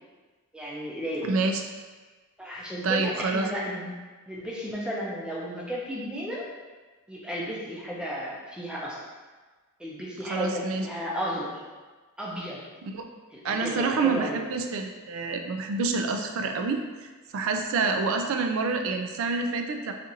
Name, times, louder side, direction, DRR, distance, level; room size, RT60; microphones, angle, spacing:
voice 1, 0.5-1.3 2.4-3.9 4.3-6.5 7.1-9.0 9.8-11.6 12.2-12.6 13.3-14.4, equal, 5° right, -5 dB, 0.5 m, -33 dB
voice 2, 1.2-1.6 2.8-3.5 10.3-10.9 12.9-13.1 13.4-19.9, right 4 dB, 65° right, 5 dB, 0.3 m, -27 dB
4.2 x 2.5 x 2.6 m, 1.3 s
head